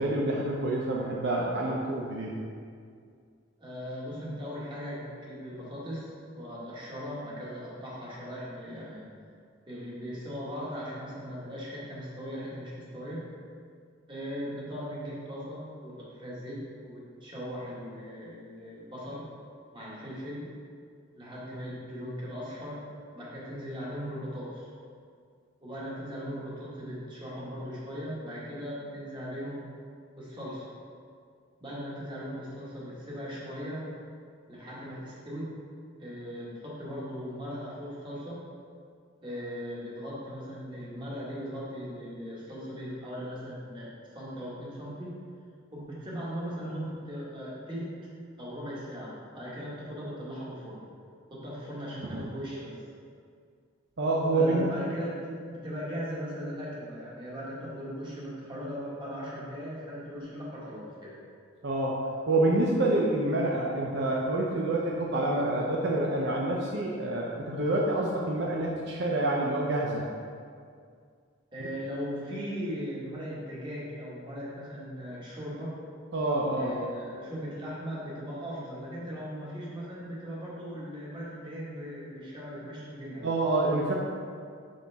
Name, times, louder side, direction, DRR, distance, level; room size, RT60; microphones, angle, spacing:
voice 1, 0.0-2.3 52.0-52.2 54.0-54.7 61.6-70.0 76.1-76.7 83.2-83.9, right 2 dB, 65° right, -3 dB, 0.6 m, -27 dB
voice 2, 3.6-9.1 9.7-13.2 14.1-19.2 19.7-20.4 21.1-22.8 23.1-24.7 25.6-29.6 30.1-30.7 31.6-33.9 34.5-35.5 36.0-38.4 39.2-45.1 45.7-47.9 48.4-50.8 51.3-52.8 54.3-61.1 71.5-75.7 76.5-83.3, equal, 25° right, -7 dB, 1.7 m, -38 dB
6.3 x 5.7 x 3.5 m, 2.2 s
head